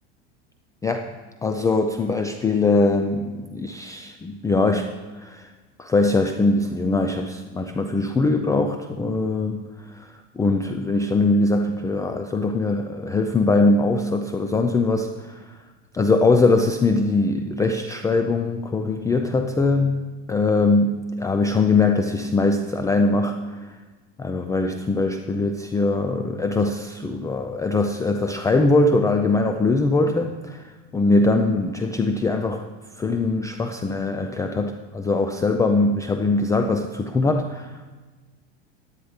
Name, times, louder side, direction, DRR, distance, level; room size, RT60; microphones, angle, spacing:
voice 1, 1.4-4.9 5.2-5.5 5.8-10.1 10.4-15.5 15.9-23.7 24.2-32.6 33.0-38.0, left 3 dB, 10° left, 6 dB, 0.4 m, -22 dB
11.5 x 9.8 x 5.1 m, 1.3 s
supercardioid pair, 120°, 34 cm